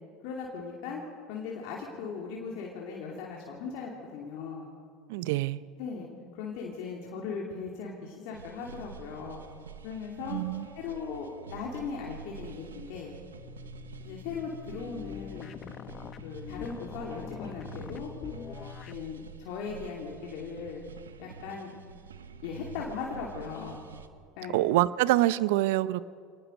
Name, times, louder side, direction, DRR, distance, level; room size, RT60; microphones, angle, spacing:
voice 1, 0.2-1.0 1.3-4.7 5.8-9.4 9.8-10.4 10.7-13.2 14.0-15.6 16.2-18.1 18.9-20.9 21.2-21.7 22.4-23.8 24.4-24.6, left 5 dB, 65° left, -2 dB, 2.9 m, -38 dB
voice 2, 5.1-5.6 10.3-10.7 24.5-26.0, right 16 dB, 70° right, 17 dB, 0.6 m, -25 dB
sound 1, 8.3-24.1, right 6 dB, 90° right, 0.9 m, -47 dB
sound 2, 13.3-19.0, left 9 dB, 40° left, 0.8 m, -43 dB
26.0 x 19.0 x 5.3 m, 2.1 s
hypercardioid pair, 75°, 0 cm